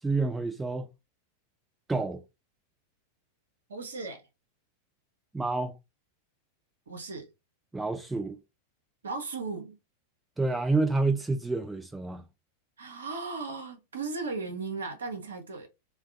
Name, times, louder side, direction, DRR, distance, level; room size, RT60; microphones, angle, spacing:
voice 1, 0.0-0.9 1.9-2.2 5.3-5.8 7.7-8.4 10.4-12.2, right 3 dB, 10° right, 0.4 m, -28 dB
voice 2, 3.7-4.2 6.9-7.3 9.0-9.8 12.8-15.7, right 4 dB, 70° right, 0.7 m, -36 dB
2.2 x 2.2 x 2.6 m
figure-of-eight pair, 90°, 0 cm